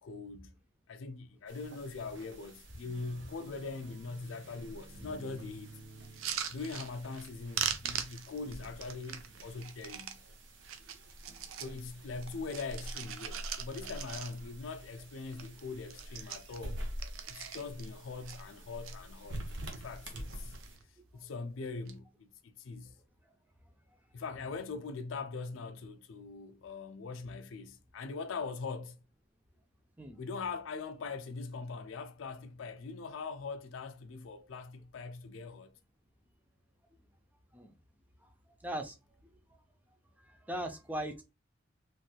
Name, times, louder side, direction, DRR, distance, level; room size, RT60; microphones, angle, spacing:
voice 1, 0.0-0.6 0.9-5.7 6.5-10.2 11.6-16.8 17.3-19.4 19.7-20.5 21.1-22.9 24.1-29.0 30.2-35.8, left 4 dB, 70° left, 0.4 m, -42 dB
sound 1, 1.5-20.8, right 1 dB, 60° right, 0.8 m, -47 dB
sound 2, 6.0-7.3 7.5-10.2 10.6-11.8 12.2-14.6 15.0-15.1 15.3-15.6 15.9-17.9 18.2-19.0 19.5-20.0 20.3-20.8 21.7-21.9, right 8 dB, 80° right, 0.5 m, -40 dB
voice 2, 38.6-38.9 40.3-41.2, right 1 dB, 10° right, 0.4 m, -38 dB
3.1 x 3.0 x 2.3 m
head